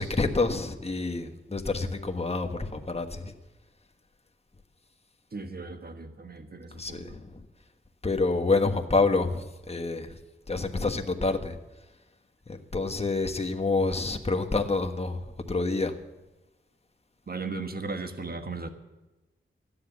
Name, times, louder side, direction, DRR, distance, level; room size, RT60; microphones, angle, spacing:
voice 1, 0.0-3.3 6.7-7.5 8.0-10.2 10.5-12.0 12.5-16.0, left 3 dB, 30° left, 5 dB, 1.4 m, -28 dB
voice 2, 5.3-7.2 17.3-18.7, right 3 dB, 45° right, 8 dB, 1.4 m, -37 dB
13.5 x 10.0 x 7.3 m, 1.1 s
cardioid pair, 55°, 21 cm